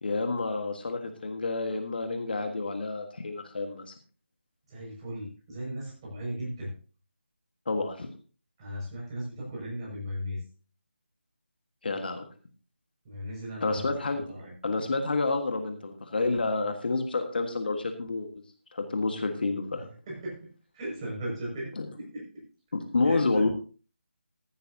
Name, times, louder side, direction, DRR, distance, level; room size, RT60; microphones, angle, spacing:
voice 1, 0.0-3.9 7.7-8.1 11.8-12.3 13.6-14.2 14.6-18.3 18.7-19.9 21.8-21.9 22.7-23.5, left 3 dB, 50° left, 6 dB, 1.6 m, -29 dB
voice 2, 4.7-6.7 8.6-10.4 13.0-14.5 20.1-22.5 23.0-23.5, equal, 25° right, -4 dB, 6.0 m, -37 dB
14.5 x 12.0 x 2.8 m, 0.38 s
figure-of-eight pair, 160°, 6 cm